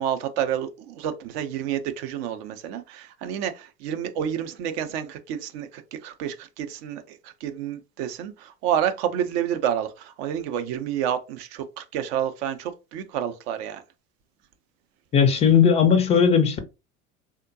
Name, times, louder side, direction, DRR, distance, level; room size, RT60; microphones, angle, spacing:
voice 1, 0.0-13.8, right 9 dB, 45° right, 0.6 m, -29 dB
voice 2, 15.1-16.7, left 7 dB, 15° left, 0.5 m, -18 dB
3.6 x 2.1 x 2.6 m
figure-of-eight pair, 75°, 44 cm